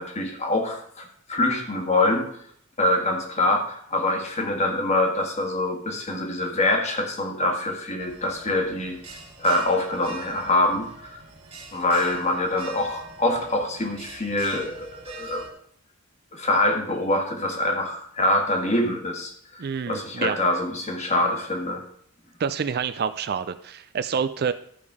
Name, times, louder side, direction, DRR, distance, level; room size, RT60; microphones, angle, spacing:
voice 1, 0.0-2.3 2.8-9.0 9.4-11.2 11.7-15.5 16.3-21.8, left 1 dB, 30° left, 3 dB, 1.5 m, -25 dB
Bell, 8.0-15.5, right 3 dB, 30° right, 1.8 m, -44 dB
voice 2, 19.6-20.4 22.4-24.5, right 6 dB, 45° right, 12 dB, 0.4 m, -27 dB
12.5 x 5.2 x 4.8 m, 0.66 s
head